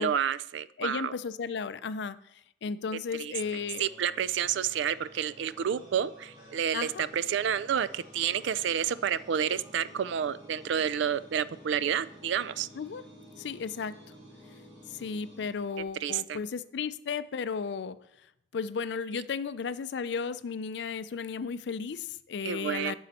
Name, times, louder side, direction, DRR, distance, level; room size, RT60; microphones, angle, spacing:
voice 1, 0.0-1.1 3.1-12.7 16.0-16.4 22.4-22.9, right 8 dB, 70° right, 16 dB, 0.3 m, -30 dB
voice 2, 0.8-3.9 6.7-7.0 12.7-13.0 13.4-13.9 14.9-18.0 18.5-22.9, left 5 dB, 65° left, 14 dB, 0.4 m, -34 dB
sound 1, 3.3-16.3, equal, 20° right, 2.2 m, -52 dB
9.2 x 5.5 x 4.1 m, 0.77 s
head